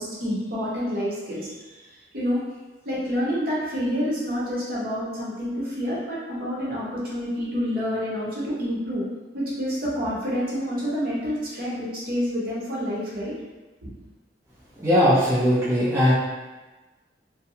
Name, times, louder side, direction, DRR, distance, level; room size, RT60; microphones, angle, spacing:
voice 1, 0.0-1.9 2.1-2.4 2.8-9.0 9.3-13.3 13.8-13.9, equal, 55° right, -7 dB, 0.9 m, -28 dB
voice 2, 14.8-16.1, equal, 15° right, -10 dB, 0.5 m, -19 dB
2.6 x 2.2 x 2.7 m, 1.2 s
head